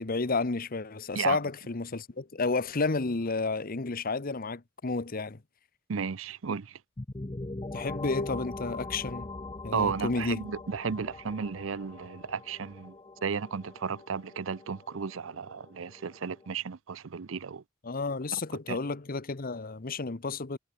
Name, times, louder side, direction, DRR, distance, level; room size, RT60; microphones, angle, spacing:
voice 1, 0.0-5.4 7.7-9.3 9.6-10.5 17.8-20.6, left 3 dB, 50° left, 1.0 m, -31 dB
voice 2, 5.9-6.8 9.7-13.0 13.2-17.6 18.7-18.8, right 6 dB, 85° right, 0.6 m, -33 dB
sound 1, 7.0-16.5, left 2 dB, 25° left, 0.7 m, -42 dB
head